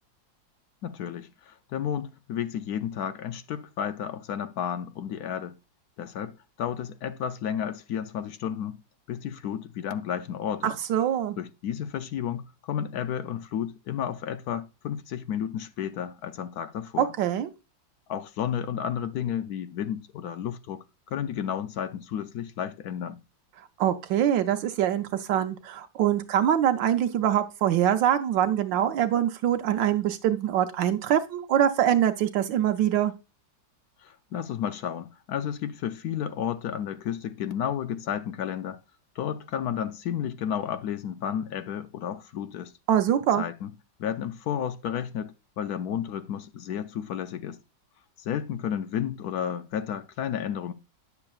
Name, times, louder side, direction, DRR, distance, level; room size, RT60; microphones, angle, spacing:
voice 1, 0.8-5.5 6.0-8.8 9.1-10.7 11.4-17.1 18.1-23.2 34.0-38.8 39.2-42.7 43.4-43.7 44.0-47.6 48.2-50.7, left 9 dB, 70° left, 0.9 m, -32 dB
voice 2, 10.6-11.4 17.0-17.5 23.8-33.1 42.9-43.4, right 10 dB, 80° right, 1.3 m, -24 dB
9.6 x 6.9 x 2.4 m
omnidirectional pair, 2.0 m